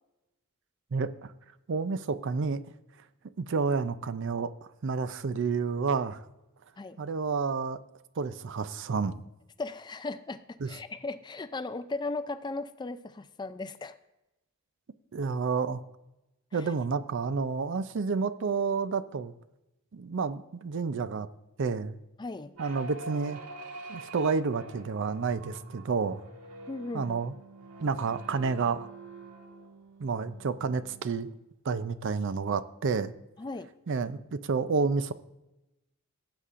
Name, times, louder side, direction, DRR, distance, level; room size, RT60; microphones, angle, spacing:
voice 1, 0.9-1.3 1.7-2.6 3.4-4.5 4.8-6.2 7.0-7.8 8.2-9.2 10.6-10.7 15.1-15.8 16.5-19.3 19.9-21.3 21.6-22.0 22.6-23.4 23.9-26.2 26.9-27.3 27.8-28.9 30.0-31.3 31.6-33.1 33.9-35.1, right 5 dB, 55° right, 14 dB, 0.5 m, -30 dB
voice 2, 9.6-14.0 16.5-16.7 22.2-22.5 26.7-27.2 33.4-33.7, left 3 dB, 20° left, 12 dB, 0.4 m, -37 dB
sound 1, 22.6-31.3, right 2 dB, 85° right, 1.7 m, -46 dB
17.5 x 8.2 x 2.5 m, 0.95 s
head